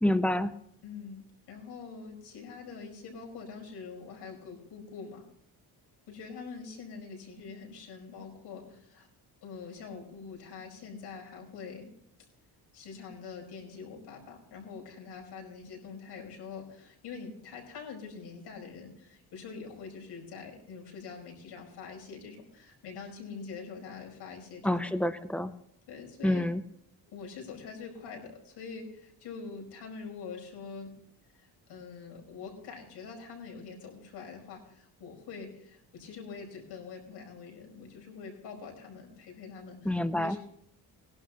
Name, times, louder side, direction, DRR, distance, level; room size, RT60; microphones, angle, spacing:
voice 1, 0.0-0.5 24.6-25.5 26.2-26.6 39.9-40.4, left 1 dB, 5° left, 11 dB, 0.5 m, -27 dB
voice 2, 0.8-5.2 6.1-9.1 9.4-11.9 12.7-25.0 25.9-26.5 27.1-30.9 31.3-40.4, left 5 dB, 80° left, 0 dB, 5.2 m, -44 dB
20.0 x 11.5 x 3.0 m, 0.75 s
cardioid pair, 160°, 40 cm